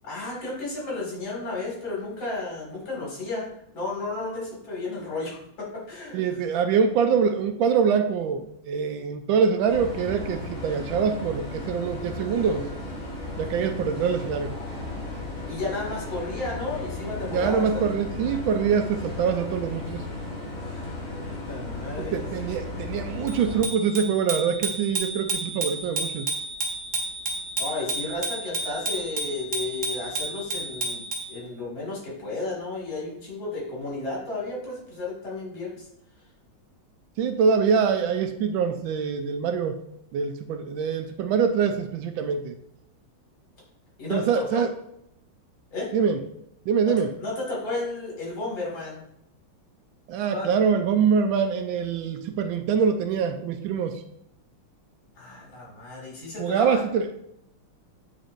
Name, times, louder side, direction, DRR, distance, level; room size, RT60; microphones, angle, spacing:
voice 1, 0.0-3.5 3.7-6.4 15.5-17.9 21.1-22.3 27.6-35.9 44.0-44.6 45.7-45.9 46.8-49.0 50.3-50.5 55.2-56.8, left 2 dB, 70° left, -4 dB, 3.1 m, -33 dB
voice 2, 6.1-12.6 13.4-14.5 17.3-20.0 22.0-26.3 37.2-39.8 40.1-42.6 44.1-44.7 45.9-46.2 46.7-47.1 50.1-54.0 56.4-57.1, right 6 dB, 80° right, 7 dB, 1.3 m, -24 dB
sound 1, 9.7-23.6, left 2 dB, 35° left, 1.9 m, -35 dB
Bicycle bell, 23.3-31.4, right 2 dB, 45° right, 1.4 m, -31 dB
9.3 x 4.1 x 2.6 m, 0.76 s
omnidirectional pair, 2.2 m